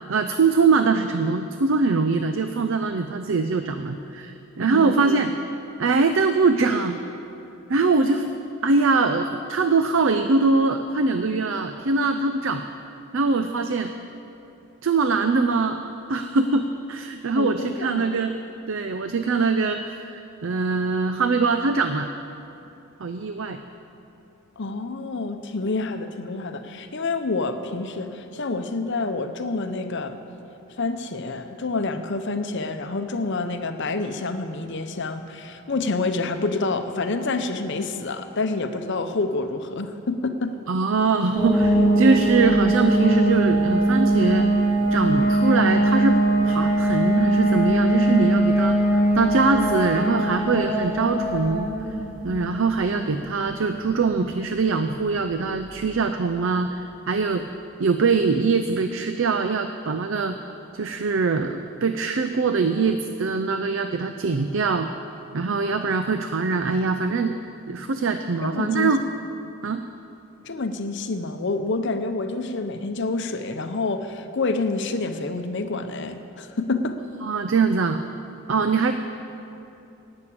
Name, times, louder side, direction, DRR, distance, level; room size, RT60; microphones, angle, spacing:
voice 1, 0.1-5.3 5.8-7.0 7.7-8.3 8.6-12.6 13.1-13.9 14.8-15.8 16.1-18.3 18.7-22.1 23.0-23.6 40.7-44.5 44.9-46.2 46.4-51.7 52.2-57.4 57.8-60.4 60.7-64.9 65.3-67.4 67.7-69.0 69.6-69.8 77.2-78.0 78.5-78.9, right 4 dB, 60° right, 8 dB, 0.5 m, -22 dB
voice 2, 17.4-18.2 24.6-30.2 30.8-40.6 68.4-69.0 70.4-77.0, left 3 dB, 55° left, 8 dB, 0.8 m, -28 dB
sound 1, 41.4-55.9, right 1 dB, 10° right, 3.4 m, -22 dB
11.5 x 8.7 x 8.6 m, 2.8 s
head